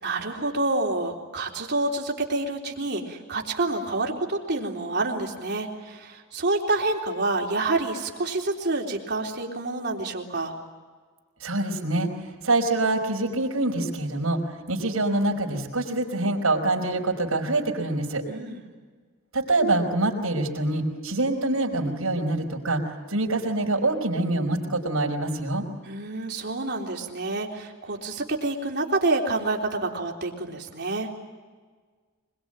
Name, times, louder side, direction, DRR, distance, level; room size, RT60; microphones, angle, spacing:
voice 1, 0.0-10.5 18.3-18.6 25.8-31.2, right 2 dB, 55° right, 0 dB, 3.8 m, -28 dB
voice 2, 11.4-12.1 12.4-18.2 19.3-22.8 23.1-25.6, right 2 dB, 85° right, 2 dB, 4.9 m, -25 dB
25.5 x 22.0 x 9.0 m, 1.5 s
head